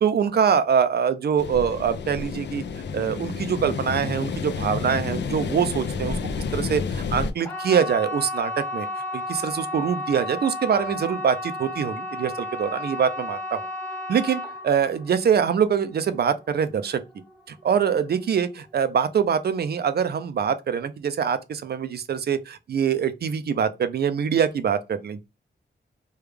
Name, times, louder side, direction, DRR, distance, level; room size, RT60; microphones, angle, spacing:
voice 1, 0.0-2.6 2.9-6.2 6.5-8.9 9.1-13.7 14.1-17.0 17.5-25.2, right 7 dB, 60° right, 0.4 m, -24 dB
sound 1, 1.4-7.3, left 5 dB, 70° left, 0.4 m, -30 dB
sound 2, 7.4-18.2 18.5-19.1 19.5-19.6, left 2 dB, 5° left, 0.8 m, -33 dB
3.4 x 2.3 x 3.2 m
wide cardioid pair, 120°, 19 cm